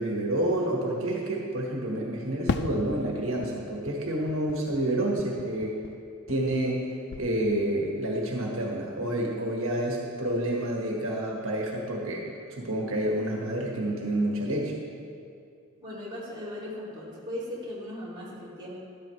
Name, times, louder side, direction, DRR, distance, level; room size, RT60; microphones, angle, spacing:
voice 1, 0.0-5.8 6.3-14.8, right 1 dB, 70° right, -1 dB, 1.5 m, -29 dB
Fireworks, 2.5-6.8 7.1-7.9, left 4 dB, 50° left, 0.3 m, -37 dB
voice 2, 15.8-18.8, left 1 dB, 20° right, -8 dB, 2.5 m, -38 dB
13.0 x 12.0 x 3.2 m, 2.4 s
head